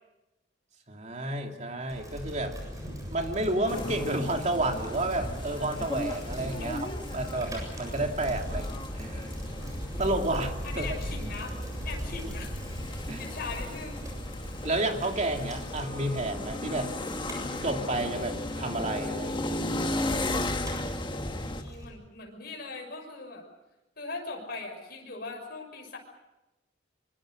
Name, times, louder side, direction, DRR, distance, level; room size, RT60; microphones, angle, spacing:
voice 1, 0.9-2.6 3.1-9.3 10.0-10.9 13.1-13.2 14.6-16.9 17.6-19.5, right 2 dB, 40° right, 3 dB, 2.8 m, -31 dB
Bicycle, 1.9-21.8, equal, 20° right, 7.8 m, -39 dB
sound 1, 3.7-21.6, left 2 dB, 25° left, 1.4 m, -36 dB
voice 2, 8.1-8.6 10.6-11.6 11.8-12.6 13.2-14.0 21.0-23.5 24.0-26.0, left 3 dB, 55° left, 1 dB, 6.2 m, -40 dB
25.5 x 24.0 x 6.6 m, 0.99 s
head